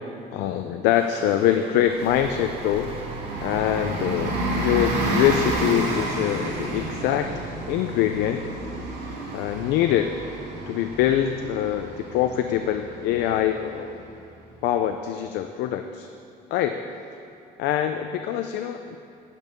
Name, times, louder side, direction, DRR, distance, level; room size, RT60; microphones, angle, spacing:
voice 1, 0.3-2.9 3.4-7.3 7.7-8.4 9.3-10.2 10.7-14.0 14.6-16.1 16.5-16.8 17.6-19.0, left 11 dB, 85° left, 7 dB, 0.5 m, -24 dB
sound 1, 0.9-4.2, right 5 dB, 35° right, 1.0 m, -43 dB
Bus, 1.9-14.2, right 2 dB, 75° right, 2.9 m, -30 dB
10.5 x 5.5 x 7.8 m, 2.7 s
cardioid pair, 110°, 17 cm